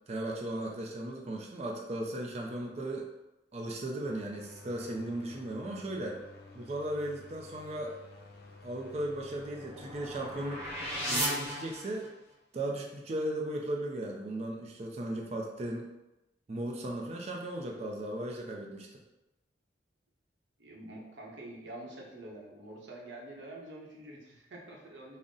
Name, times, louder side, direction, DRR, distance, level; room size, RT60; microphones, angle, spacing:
voice 1, 0.1-3.1 3.5-6.2 6.5-8.0 8.6-10.7 11.1-12.0 12.5-15.9 16.5-18.9, right 1 dB, 35° right, 0 dB, 0.4 m, -36 dB
sound 1, 4.0-11.0, left 2 dB, 60° left, 0.6 m, -53 dB
sound 2, 8.9-12.3, equal, 15° right, 1.1 m, -36 dB
voice 2, 20.6-25.2, right 1 dB, 75° right, -2 dB, 0.8 m, -46 dB
3.8 x 2.1 x 3.7 m, 0.97 s
head